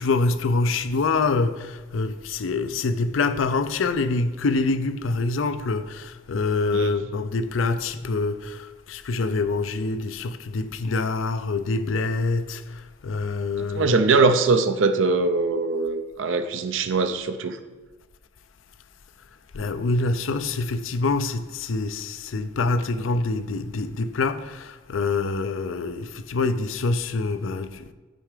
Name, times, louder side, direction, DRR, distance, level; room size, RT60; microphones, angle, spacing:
voice 1, 0.0-14.0 19.5-27.9, left 3 dB, 90° left, 0.5 m, -25 dB
voice 2, 13.6-17.6, right 3 dB, 80° right, 0.5 m, -22 dB
9.1 x 4.5 x 5.0 m
head